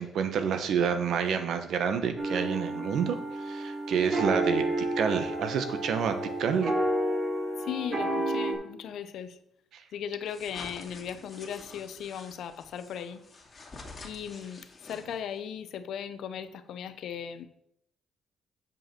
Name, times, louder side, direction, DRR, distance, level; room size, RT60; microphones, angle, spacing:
voice 1, 0.0-3.2 3.4-6.7, right 7 dB, 70° right, 8 dB, 1.0 m, -28 dB
sound 1, 2.2-8.5, right 1 dB, 40° right, 2.7 m, -30 dB
voice 2, 7.6-9.4 9.9-13.2 14.0-17.4, left 8 dB, 75° left, 12 dB, 0.6 m, -37 dB
sound 2, 10.3-15.4, left 3 dB, 30° left, 2.2 m, -48 dB
7.6 x 5.4 x 5.9 m, 0.77 s
cardioid pair, 90°, 0 cm